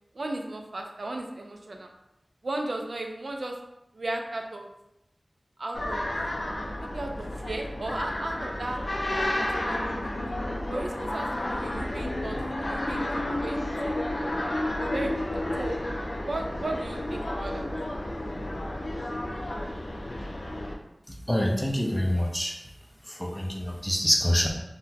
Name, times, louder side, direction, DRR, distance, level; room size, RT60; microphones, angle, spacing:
voice 1, 0.1-1.9 2.4-3.6 3.9-4.7 5.6-6.0 6.8-8.8 9.1-10.1 10.7-14.0 14.8-15.7 16.2-17.7, right 2 dB, 85° right, 3 dB, 0.3 m, -35 dB
sound 1, 5.7-20.8, left 1 dB, 65° left, 0.4 m, -31 dB
voice 2, 21.3-22.5 23.1-24.5, equal, 10° left, 0 dB, 0.6 m, -26 dB
3.7 x 2.1 x 2.8 m, 0.88 s
wide cardioid pair, 55°, 0 cm